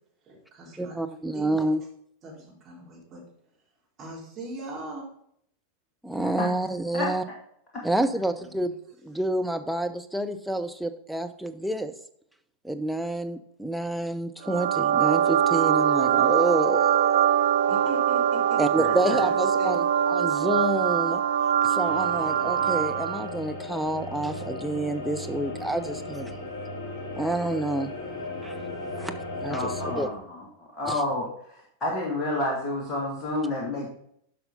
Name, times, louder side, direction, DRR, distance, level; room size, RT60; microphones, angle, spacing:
voice 1, 0.2-1.0 1.3-1.6 2.2-3.2 4.0-5.1 8.0-8.7 17.7-18.6 19.2-19.8 26.3-26.4 29.7-29.8, right 1 dB, 30° right, -4 dB, 4.1 m, -40 dB
voice 2, 0.8-1.8 6.0-7.2 7.8-8.7 9.0-11.9 12.6-17.3 18.6-21.2 21.6-26.3 27.2-27.9 28.4-28.5 29.0-29.1 29.4-30.1 30.9-31.0, right 1 dB, ahead, 6 dB, 0.7 m, -28 dB
sound 1, 14.4-23.3, right 9 dB, 55° right, 0.4 m, -23 dB
voice 3, 18.8-19.2 29.5-31.3 31.8-33.9, left 2 dB, 25° left, -3 dB, 2.5 m, -29 dB
sound 2, 21.8-30.1, left 2 dB, 50° left, 3.4 m, -36 dB
11.0 x 5.7 x 3.9 m, 0.69 s
figure-of-eight pair, 90°, 0 cm